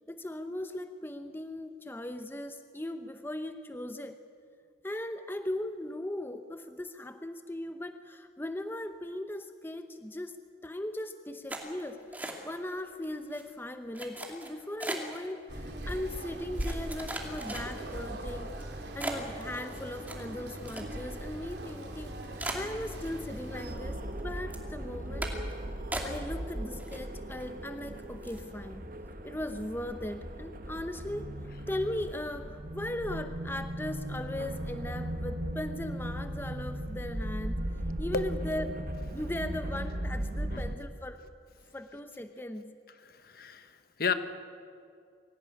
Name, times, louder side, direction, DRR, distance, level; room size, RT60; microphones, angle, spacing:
voice 1, 0.1-4.2 4.8-10.4 10.6-25.3 26.0-28.9 29.2-31.3 31.7-37.7 38.0-41.2 41.7-42.7, left 1 dB, 10° left, 8 dB, 0.8 m, -38 dB
sound 1, 11.5-12.7 13.0-13.4 13.9-15.2 15.9-16.0 16.6-18.0 18.5-18.6 19.0-21.2 21.5-21.6 22.0-22.1 22.4-23.5 23.8-24.2 24.5-24.7 25.2-25.5 25.9-26.5 26.8-27.4 27.8-27.9 28.2-28.5, right 1 dB, 10° right, 2.5 m, -39 dB
sound 2, 15.5-23.7, right 1 dB, 70° right, 3.3 m, -40 dB
sound 3, 23.7-40.8, right 1 dB, 50° right, 1.4 m, -37 dB
voice 2, 43.0-44.1, left 5 dB, 55° left, 10 dB, 1.3 m, -33 dB
24.0 x 16.5 x 10.0 m, 2.3 s
head